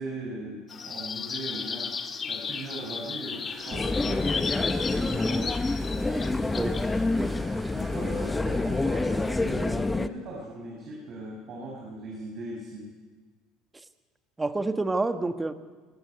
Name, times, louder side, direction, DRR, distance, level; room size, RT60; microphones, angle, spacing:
voice 1, 0.0-2.0 2.3-5.5 6.0-6.3 7.6-12.9, right 1 dB, 50° right, -2 dB, 5.5 m, -39 dB
sound 1, 0.7-7.3, left 5 dB, 30° left, 1.7 m, -35 dB
sound 2, 3.4-9.7, right 3 dB, 30° right, 5.0 m, -47 dB
sound 3, 3.7-10.1, left 2 dB, 15° left, 0.8 m, -27 dB
voice 2, 14.4-15.5, right 2 dB, 15° right, 9 dB, 1.4 m, -28 dB
20.5 x 14.5 x 9.7 m, 1.4 s
supercardioid pair, 110°, 0 cm